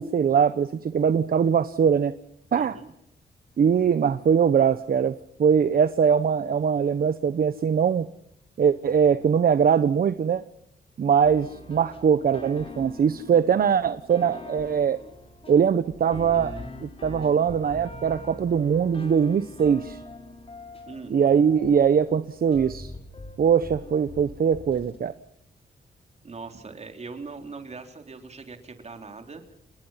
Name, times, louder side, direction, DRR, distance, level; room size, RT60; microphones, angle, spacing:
voice 1, 0.0-2.1 2.5-2.8 3.6-8.1 8.6-10.4 11.0-15.0 15.5-16.6 16.8-20.0 21.1-22.9 23.4-25.1, right 7 dB, 60° right, 12 dB, 1.1 m, -22 dB
voice 2, 2.6-2.9 20.9-21.2 26.2-29.5, right 4 dB, 40° right, 5 dB, 3.9 m, -41 dB
sound 1, 11.2-25.0, left 2 dB, 35° left, 5.3 m, -43 dB
29.5 x 20.0 x 5.8 m, 0.73 s
wide cardioid pair, 115°, 18 cm